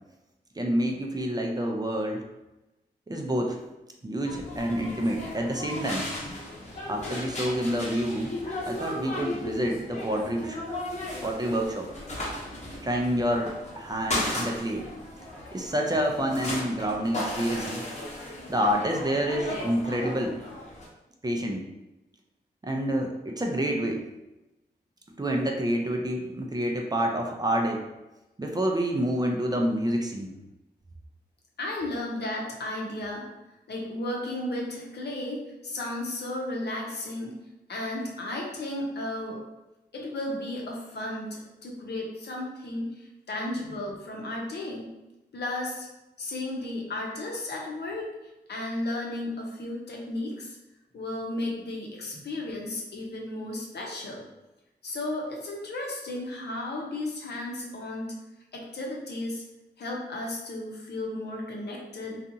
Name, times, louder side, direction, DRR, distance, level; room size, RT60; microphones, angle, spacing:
voice 1, 0.6-2.3 3.1-3.6 4.0-6.1 6.9-8.3 8.7-10.6 11.2-11.9 12.8-14.9 15.5-17.9 18.5-20.4 21.2-21.6 22.6-24.0 25.2-27.9 28.4-30.3, equal, 20° right, 1 dB, 0.4 m, -28 dB
sound 1, 4.3-20.9, left 1 dB, 40° left, 0.9 m, -36 dB
voice 2, 31.6-37.3 37.7-39.4 39.9-44.9 45.3-45.9 46.2-48.1 48.5-50.6 50.9-54.3 54.8-58.1 58.5-59.4 59.8-62.2, left 1 dB, 70° left, -1 dB, 0.7 m, -34 dB
2.6 x 2.4 x 2.6 m, 0.97 s
cardioid pair, 55°, 18 cm